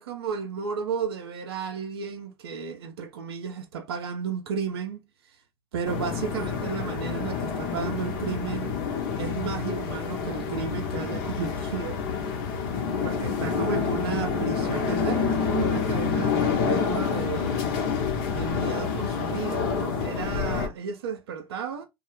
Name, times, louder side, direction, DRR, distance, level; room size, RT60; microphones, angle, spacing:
voice 1, 0.0-5.0 5.7-8.7 9.2-12.0 13.0-17.7 18.3-21.9, right 6 dB, 80° right, 0.5 m, -33 dB
sound 1, 5.8-20.7, left 6 dB, 65° left, 0.7 m, -28 dB
2.0 x 2.0 x 3.0 m
hypercardioid pair, 70°, 13 cm